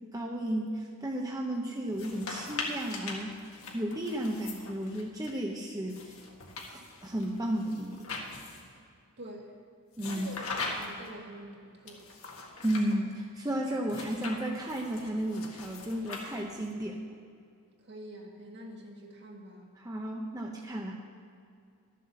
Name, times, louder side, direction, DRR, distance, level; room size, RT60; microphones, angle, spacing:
voice 1, 0.1-3.4 3.7-6.1 6.7-8.1 10.0-10.3 12.6-17.0 19.8-20.9, right 1 dB, 15° right, -1 dB, 0.8 m, -33 dB
sound 1, 1.9-5.3 5.9-8.8 9.9-11.1 11.9-13.0 13.9-16.7, left 3 dB, 65° left, 1.8 m, -41 dB
voice 2, 9.2-9.5 10.1-10.4 10.8-12.1 17.8-19.8, right 1 dB, 50° right, 0 dB, 1.8 m, -46 dB
12.5 x 7.6 x 7.0 m, 2.4 s
head